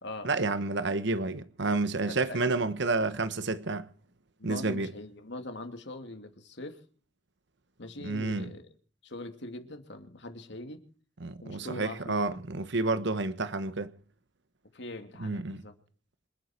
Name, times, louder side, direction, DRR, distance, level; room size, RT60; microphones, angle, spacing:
voice 1, 0.2-3.9 4.4-4.9 8.0-8.5 11.2-13.9 15.2-15.6, right 3 dB, 65° right, 1.2 m, -30 dB
voice 2, 2.1-2.7 4.4-6.8 7.8-8.6 9.0-10.8 11.4-12.4 14.7-15.8, left 2 dB, 65° left, 2.8 m, -42 dB
27.5 x 9.5 x 4.5 m
head